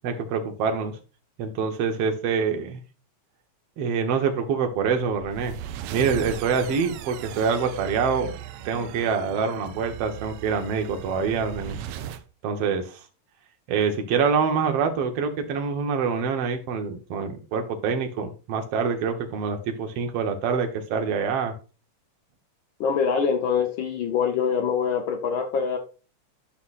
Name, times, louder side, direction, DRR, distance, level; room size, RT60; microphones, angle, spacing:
voice 1, 0.0-1.0 1.4-2.8 3.8-5.6 5.9-8.3 8.7-11.8 12.4-13.0 13.7-21.5, right 5 dB, 60° right, 4 dB, 2.0 m, -25 dB
sound 1, 4.9-12.2, right 10 dB, 85° right, 1.3 m, -37 dB
voice 2, 22.8-25.8, left 6 dB, 70° left, 4 dB, 1.1 m, -24 dB
11.5 x 5.7 x 2.5 m, 0.33 s
omnidirectional pair, 3.3 m